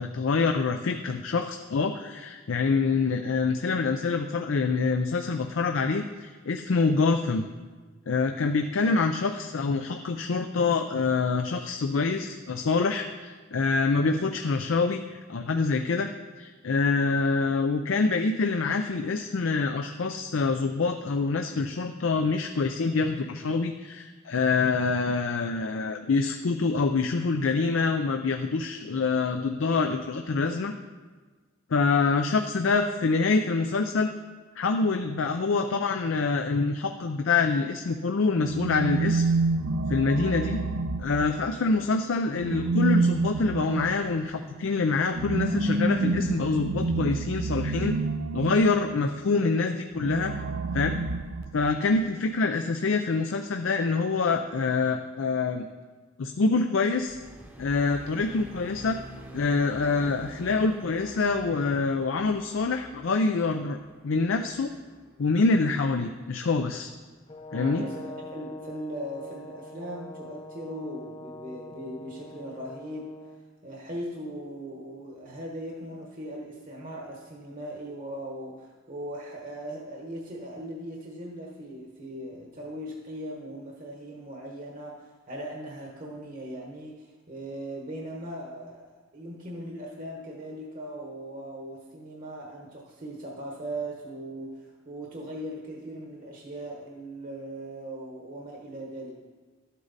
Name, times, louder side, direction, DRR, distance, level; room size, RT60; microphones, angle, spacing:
voice 1, 0.0-7.5 8.1-16.1 16.4-30.7 31.7-34.1 34.6-39.2 39.9-40.6 41.0-48.0 48.3-50.4 50.7-51.0 51.5-55.7 56.2-57.2 57.6-59.0 59.3-63.8 64.0-64.7 65.2-66.9 67.5-67.8, left 4 dB, 75° left, 6 dB, 0.5 m, -26 dB
sound 1, 38.4-41.7 42.3-49.0 49.9-51.9, right 3 dB, 80° right, 0.6 m, -28 dB
sound 2, 57.0-67.4, right 1 dB, 10° right, 0.9 m, -48 dB
Brass instrument, 67.3-73.4, left 2 dB, 30° left, 0.6 m, -44 dB
voice 2, 67.5-73.1 73.6-99.1, right 1 dB, 40° right, -1 dB, 1.2 m, -39 dB
12.5 x 8.3 x 4.1 m, 1.4 s
head